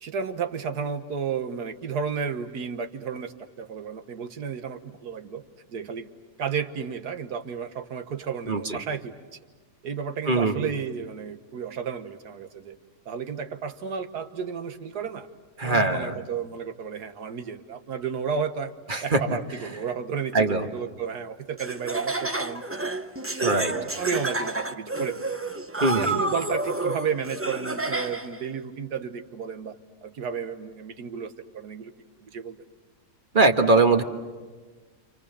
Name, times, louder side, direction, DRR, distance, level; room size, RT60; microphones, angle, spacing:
voice 1, 0.0-5.4 5.7-6.1 6.4-9.1 9.8-12.7 13.1-15.3 15.6-18.7 19.0-22.9 23.4-25.2 25.8-29.8 30.0-31.9 32.2-32.6, right 6 dB, 75° right, 9 dB, 1.8 m, -32 dB
voice 2, 8.5-8.8 10.3-10.7 15.6-16.2 18.9-19.2 20.3-20.7 23.4-23.7 25.8-26.2 33.3-34.0, right 3 dB, 35° right, 6 dB, 1.5 m, -21 dB
Laughter, 21.6-28.4, right 2 dB, 15° right, 0.4 m, -30 dB
29.5 x 28.0 x 7.0 m, 1.3 s
omnidirectional pair, 1.7 m